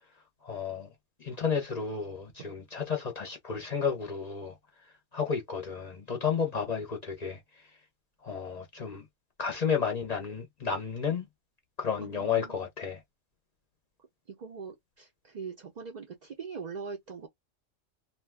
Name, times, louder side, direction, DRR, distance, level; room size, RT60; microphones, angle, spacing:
voice 1, 0.4-0.9 1.2-4.5 5.1-7.4 8.2-9.0 9.4-11.3 11.8-13.0, left 6 dB, 40° left, 0.6 m, -32 dB
voice 2, 12.0-12.7 14.3-17.3, right 5 dB, 50° right, 0.5 m, -42 dB
2.6 x 2.2 x 3.4 m
omnidirectional pair, 1.3 m